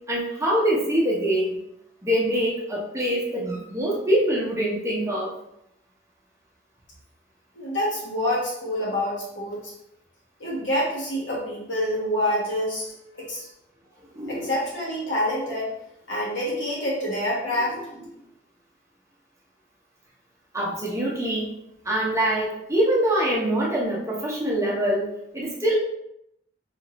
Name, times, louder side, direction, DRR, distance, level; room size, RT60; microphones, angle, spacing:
voice 1, 0.1-1.6 2.0-5.3 14.1-14.5 17.5-17.8 20.5-21.5 21.8-25.8, right 1 dB, 15° right, -4 dB, 0.7 m, -24 dB
voice 2, 7.5-9.7 10.4-12.9 13.1-13.5 14.3-15.7 16.1-17.8, left 1 dB, 85° left, -6 dB, 1.3 m, -27 dB
4.9 x 2.5 x 2.9 m, 0.79 s
head